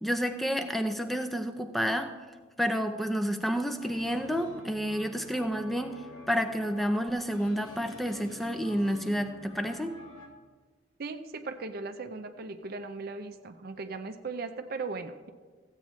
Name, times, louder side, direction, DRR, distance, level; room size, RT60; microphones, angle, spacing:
voice 1, 0.0-2.1 2.6-6.0 6.3-10.0, equal, ahead, 7 dB, 0.5 m, -30 dB
sound 1, 3.8-10.3, left 2 dB, 80° left, 1.7 m, -48 dB
voice 2, 11.0-15.3, right 3 dB, 50° right, 8 dB, 0.5 m, -38 dB
15.0 x 8.3 x 3.1 m, 1.4 s
head